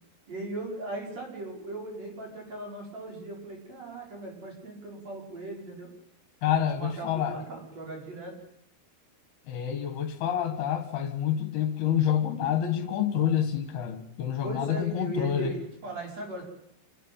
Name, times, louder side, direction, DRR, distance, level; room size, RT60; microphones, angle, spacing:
voice 1, 0.3-5.9 6.5-8.3 14.4-16.4, right 2 dB, 40° right, 0 dB, 6.2 m, -38 dB
voice 2, 6.4-7.4 9.5-15.6, left 9 dB, 70° left, 8 dB, 3.5 m, -28 dB
27.5 x 12.5 x 9.0 m, 0.71 s
omnidirectional pair, 4.8 m